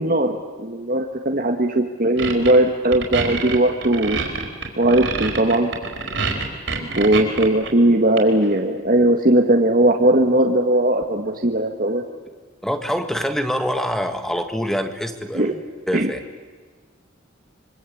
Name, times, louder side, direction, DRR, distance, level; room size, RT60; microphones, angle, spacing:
voice 1, 0.0-4.2 4.8-5.7 6.7-12.0 15.3-15.5 15.9-16.1, right 1 dB, 45° right, 3 dB, 1.7 m, -18 dB
sound 1, 2.2-2.6 2.9-7.7 8.2-8.6, right 4 dB, 65° right, 4.9 m, -26 dB
voice 2, 12.6-15.6 15.9-16.2, equal, ahead, 7 dB, 1.7 m, -25 dB
25.5 x 24.5 x 8.6 m, 1.4 s
head